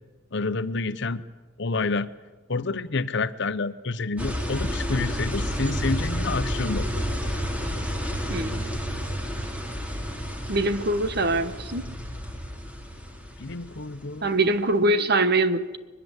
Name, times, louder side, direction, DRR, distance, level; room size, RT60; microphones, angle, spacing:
voice 1, 0.3-1.2 1.6-2.1 2.5-6.9 13.4-14.4, left 3 dB, 65° left, 13 dB, 0.9 m, -28 dB
sound 1, 4.2-14.3, equal, 5° right, 2.8 m, -30 dB
voice 2, 8.3-8.6 10.5-11.9 14.2-15.8, right 2 dB, 55° right, 11 dB, 1.3 m, -23 dB
22.0 x 22.0 x 8.2 m, 1.2 s
head